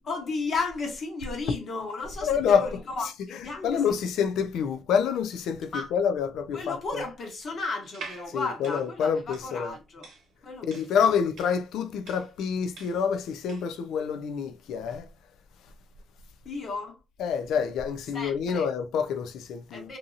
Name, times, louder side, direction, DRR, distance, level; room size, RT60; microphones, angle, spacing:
voice 1, 0.0-3.8 5.7-5.9 6.5-10.1 10.4-11.1 16.4-17.0 18.1-18.7 19.7-20.0, left 3 dB, 55° left, 1.1 m, -34 dB
voice 2, 2.2-7.0 8.3-9.8 10.6-15.1 17.2-19.9, left 7 dB, 80° left, 0.4 m, -27 dB
sound 1, 7.8-13.8, right 4 dB, 70° right, 0.8 m, -46 dB
2.7 x 2.6 x 2.4 m
cardioid pair, 90°, 0 cm